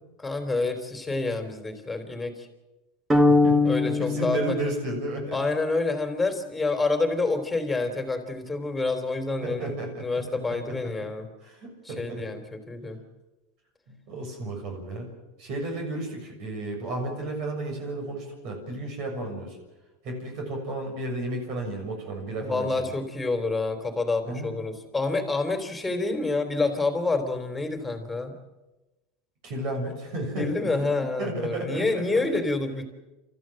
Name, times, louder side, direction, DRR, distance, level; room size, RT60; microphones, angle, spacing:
voice 1, 0.2-2.3 3.6-4.5 5.3-9.7 10.0-11.3 11.8-12.4 12.7-13.0 22.4-28.3 30.4-32.8, left 3 dB, 10° left, 7 dB, 3.3 m, -28 dB
sound 1, 3.1-5.4, left 2 dB, 15° right, 2.2 m, -22 dB
voice 2, 3.3-5.4 9.4-10.2 10.5-10.8 11.4-12.2 14.1-15.1 15.4-19.6 20.0-22.9 24.2-24.5 29.4-30.9 31.2-32.4, right 1 dB, 55° right, 3 dB, 6.8 m, -33 dB
28.0 x 14.0 x 7.7 m, 1.1 s
supercardioid pair, 125°, 0 cm